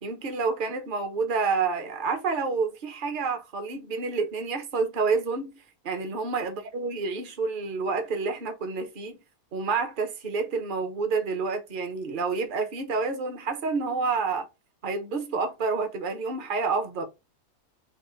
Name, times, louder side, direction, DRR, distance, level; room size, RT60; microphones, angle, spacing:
voice 1, 0.0-5.5 5.8-9.2 9.5-14.5 14.8-17.0, right 4 dB, 40° right, 1.0 m, -28 dB
5.6 x 2.4 x 3.9 m
omnidirectional pair, 1.6 m